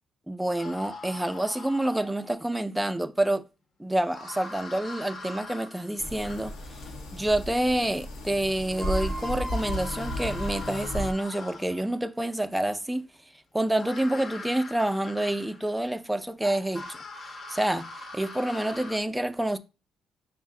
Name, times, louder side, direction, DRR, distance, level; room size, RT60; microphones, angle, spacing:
voice 1, 0.3-3.4 3.8-6.5 7.1-13.1 13.5-17.0 17.5-17.9 18.1-19.6, right 1 dB, 5° right, 0.3 m, -28 dB
sound 1, 0.6-2.4 4.0-7.0 8.3-8.4 8.7-12.0 13.7-15.8 16.4-19.0, left 2 dB, 50° left, 0.6 m, -42 dB
sound 2, 6.0-11.1, left 1 dB, 85° left, 0.7 m, -34 dB
5.4 x 2.0 x 3.6 m
cardioid pair, 90°, 0 cm